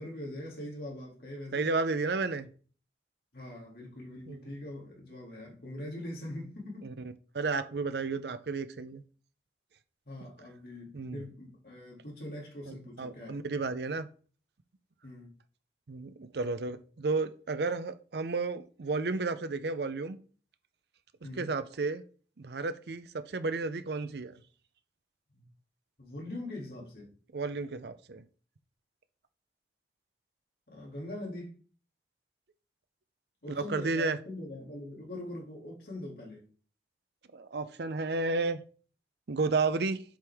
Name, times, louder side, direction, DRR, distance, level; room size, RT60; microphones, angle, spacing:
voice 1, 0.0-1.6 3.3-6.9 10.1-13.4 15.0-15.3 21.2-21.5 25.3-25.4 26.0-27.1 30.7-31.6 33.4-36.4, left 1 dB, 55° left, 2.5 m, -42 dB
voice 2, 1.5-2.5 4.3-4.5 6.8-6.9 7.3-9.0 10.9-11.2 12.7-14.1 15.9-20.2 21.4-22.0 22.4-24.4 27.3-28.2 33.5-34.2 37.3-38.6 39.3-40.0, right 3 dB, 70° right, 0.6 m, -32 dB
7.5 x 5.3 x 3.5 m
head